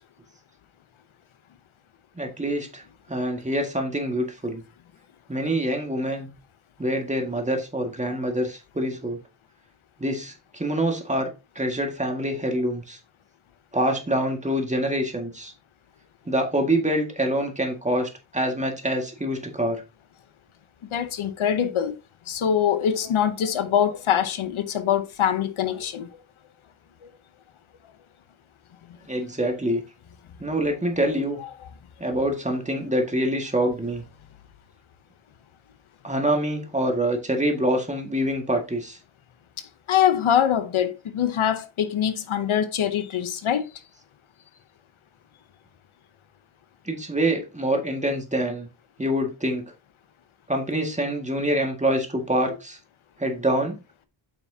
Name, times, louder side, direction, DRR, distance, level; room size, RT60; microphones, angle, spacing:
voice 1, 2.2-2.8 3.1-4.6 5.3-6.3 6.8-9.2 10.0-11.3 11.6-13.0 13.7-15.5 16.3-19.8 29.1-29.8 30.4-31.4 32.0-34.0 36.0-39.0 46.9-48.7 49.0-49.6 50.5-52.8 53.2-53.8, right 1 dB, 15° right, 1.9 m, -25 dB
voice 2, 20.9-21.9 22.3-26.1 39.9-43.7, left 9 dB, 80° left, 0.9 m, -23 dB
8.7 x 5.8 x 2.8 m
wide cardioid pair, 115°, 48 cm